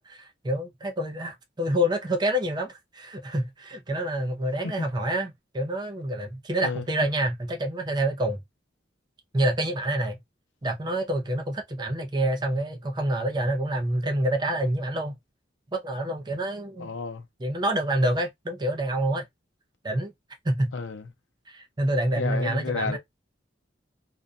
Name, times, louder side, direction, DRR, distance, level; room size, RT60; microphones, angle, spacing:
voice 1, 0.0-8.4 9.3-10.2 10.6-15.2 15.7-16.9 17.4-19.3 19.8-20.1 20.4-20.7 21.5-23.0, right 1 dB, 25° right, 0.4 m, -27 dB
voice 2, 16.8-17.3 20.7-21.1 22.2-23.0, left 4 dB, 85° left, 0.6 m, -31 dB
2.5 x 2.2 x 2.4 m
head